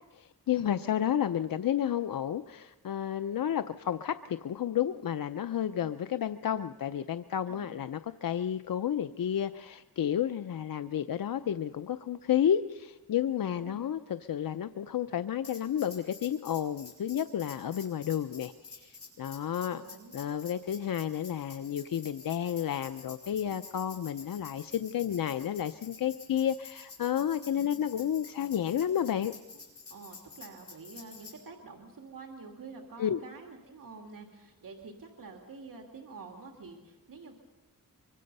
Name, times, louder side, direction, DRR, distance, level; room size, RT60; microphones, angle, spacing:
voice 1, 0.1-19.8 20.1-29.3 33.0-33.2, left 10 dB, 75° left, 10 dB, 0.6 m, -31 dB
voice 2, 7.5-7.8 13.4-13.8 19.5-20.2 27.6-27.8 29.1-29.3 29.9-37.3, right 4 dB, 70° right, 1 dB, 2.5 m, -48 dB
Tambourine, 15.4-31.4, left 4 dB, 45° left, 6.9 m, -49 dB
24.5 x 24.0 x 5.4 m, 1.1 s
wide cardioid pair, 85°, 34 cm